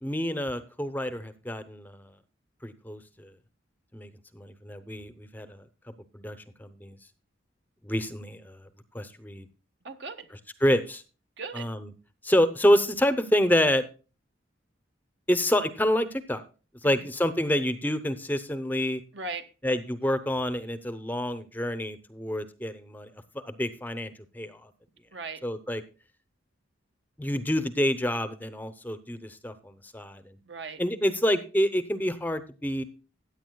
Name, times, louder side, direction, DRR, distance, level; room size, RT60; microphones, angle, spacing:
voice 1, 0.0-2.1 2.6-3.3 3.9-5.6 6.1-7.0 7.8-8.7 8.9-9.5 10.6-11.0 11.5-11.9 12.2-13.8 15.3-16.4 16.8-19.0 19.6-23.1 23.4-24.7 25.4-25.8 27.2-30.4 30.8-32.8, equal, 10° left, 0.7 m, -27 dB
voice 2, 9.8-10.3 11.4-11.7 16.8-17.1 19.1-19.5 25.1-25.5 30.5-30.8, right 4 dB, 60° right, 1.3 m, -38 dB
15.5 x 9.2 x 2.2 m
head